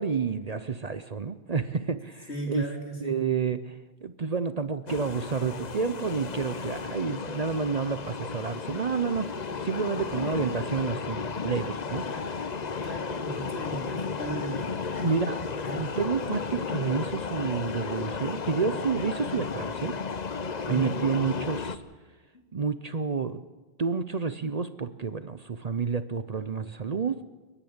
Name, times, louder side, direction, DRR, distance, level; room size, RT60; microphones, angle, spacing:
voice 1, 0.0-2.7 3.0-12.1 15.0-15.4 15.7-19.9 20.7-21.8 22.5-23.4 23.8-27.2, right 5 dB, 40° right, 12 dB, 0.7 m, -29 dB
voice 2, 2.3-3.2 10.0-10.4 12.1-15.1 15.6-15.9 20.6-21.0 22.3-22.4, right 1 dB, 75° left, 1 dB, 3.7 m, -37 dB
sound 1, 4.9-21.8, left 5 dB, 45° left, 0.9 m, -34 dB
30.0 x 10.0 x 8.8 m, 1.2 s
omnidirectional pair, 1.1 m